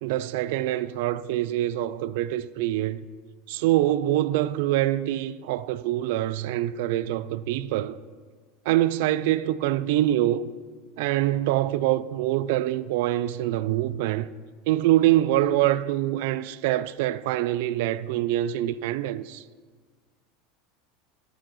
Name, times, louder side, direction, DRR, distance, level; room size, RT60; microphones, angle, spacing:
voice 1, 0.0-3.0 3.5-8.0 8.7-10.4 11.0-14.3 14.7-19.4, right 14 dB, 65° right, 0.3 m, -25 dB
11.0 x 8.7 x 3.1 m
supercardioid pair, 150°, 0 cm